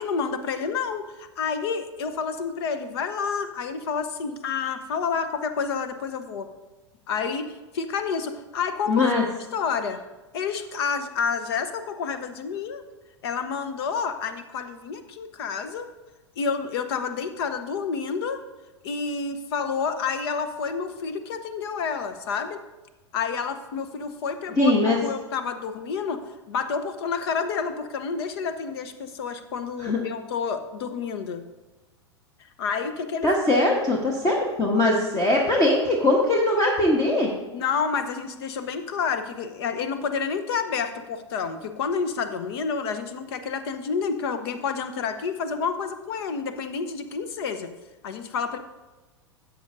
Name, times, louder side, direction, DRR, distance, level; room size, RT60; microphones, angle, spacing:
voice 1, 0.0-6.5 7.1-9.1 9.5-10.0 10.3-12.8 13.2-15.9 16.4-18.4 18.8-22.6 23.1-31.4 32.6-33.6 37.5-47.7 48.0-48.6, left 5 dB, 55° left, 10 dB, 0.9 m, -29 dB
voice 2, 8.9-9.2 24.6-25.0 29.8-30.0 33.2-37.3, left 2 dB, 20° left, -1 dB, 1.2 m, -21 dB
13.0 x 8.1 x 2.6 m, 1.1 s
figure-of-eight pair, 90°, 15 cm